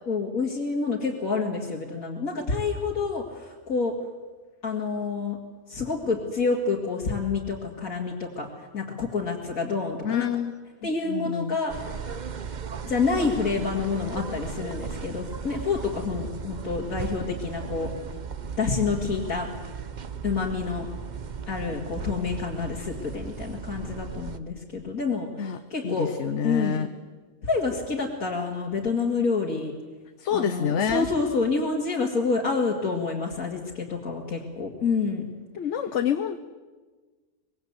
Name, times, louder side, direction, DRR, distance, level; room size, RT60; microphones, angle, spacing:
voice 1, 0.1-4.0 4.6-5.4 5.7-10.3 10.8-12.1 12.9-17.9 18.6-19.5 20.2-20.9 21.5-26.1 26.4-26.8 27.4-29.7 30.3-35.3, left 4 dB, 85° left, -3 dB, 2.7 m, -28 dB
voice 2, 10.0-10.5 11.1-11.6 25.4-25.6 25.8-26.9 30.2-31.1 35.6-36.4, left 8 dB, 60° left, 9 dB, 1.2 m, -27 dB
sound 1, 11.7-24.4, right 6 dB, 40° right, 0.9 m, -36 dB
24.5 x 21.0 x 8.1 m, 1.3 s
omnidirectional pair, 1.5 m